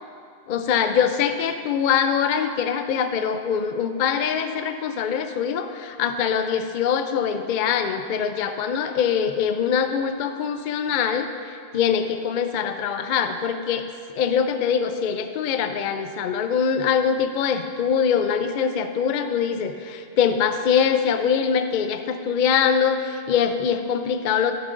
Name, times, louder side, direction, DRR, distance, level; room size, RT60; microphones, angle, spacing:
voice 1, 0.5-13.9 14.2-24.5, left 7 dB, 60° left, 8 dB, 0.6 m, -23 dB
11.0 x 9.7 x 2.5 m, 2.3 s
omnidirectional pair, 1.1 m